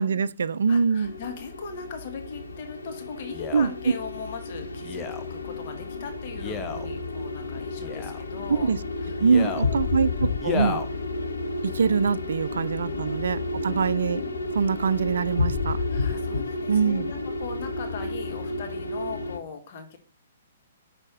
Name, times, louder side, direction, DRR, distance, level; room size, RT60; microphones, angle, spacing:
voice 1, 0.0-1.1 3.5-3.7 8.5-8.8 9.2-10.8 11.6-14.2 14.5-15.8 16.7-17.1, right 6 dB, 60° right, 0.4 m, -24 dB
voice 2, 0.7-8.7 9.0-10.0 12.9-14.3 15.7-20.0, left 5 dB, 40° left, 1.3 m, -39 dB
sound 1, 1.0-19.4, left 3 dB, 70° left, 1.0 m, -31 dB
Male speech man speaking, 3.3-3.7 4.8-5.3 6.3-6.9 7.8-8.2 9.2-9.7 10.4-10.9 11.6-11.7, left 5 dB, 20° left, 0.8 m, -32 dB
6.4 x 4.2 x 6.3 m
figure-of-eight pair, 120°, 0 cm